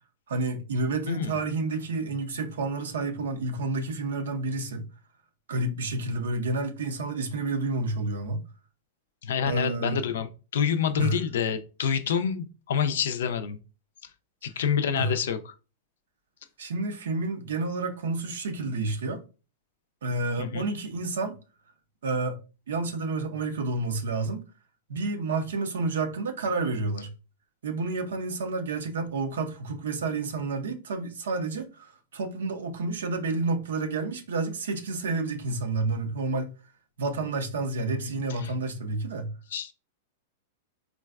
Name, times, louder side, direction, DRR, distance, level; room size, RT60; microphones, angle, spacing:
voice 1, 0.3-4.8 5.5-8.4 9.5-10.0 11.0-11.2 15.0-15.1 16.6-19.2 20.0-21.3 22.0-22.4 22.7-24.4 24.9-27.1 27.6-36.5 37.0-39.3, right 3 dB, 80° right, 0.5 m, -30 dB
voice 2, 1.1-1.4 9.2-13.6 14.4-15.5 20.4-20.7 38.0-38.1 38.4-38.5 39.5-39.7, left 7 dB, 75° left, 0.4 m, -27 dB
3.7 x 2.3 x 2.3 m
hypercardioid pair, 110°, 0 cm